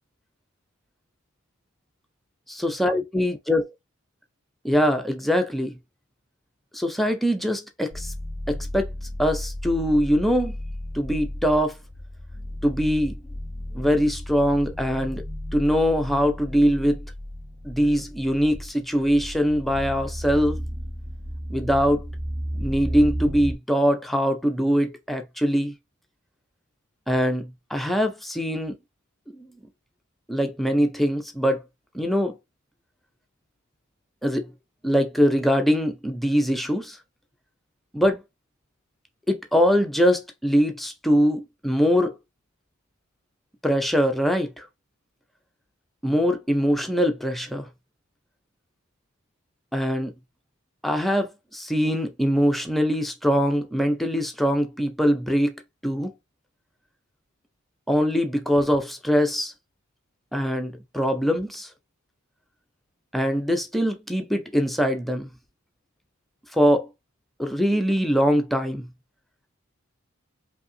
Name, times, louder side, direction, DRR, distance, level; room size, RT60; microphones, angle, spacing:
voice 1, 2.5-3.7 4.6-5.8 6.7-8.1 8.5-8.9 9.2-10.6 10.9-11.8 12.6-13.2 13.7-15.2 15.5-17.0 17.6-20.6 21.5-22.1 22.5-25.7 27.1-28.8 29.3-29.5 30.3-31.6 31.9-32.4 34.2-34.5 34.8-37.0 37.9-38.2 39.3-42.1 43.6-44.7 46.0-47.7 49.7-50.1 50.8-55.5 55.8-56.1 57.9-59.5 60.3-61.7 63.1-65.3 66.5-66.9 67.4-68.9, equal, ahead, 0.4 m, -22 dB
sound 1, 7.9-23.5, equal, 75° right, 1.4 m, -34 dB
5.2 x 2.7 x 2.6 m
head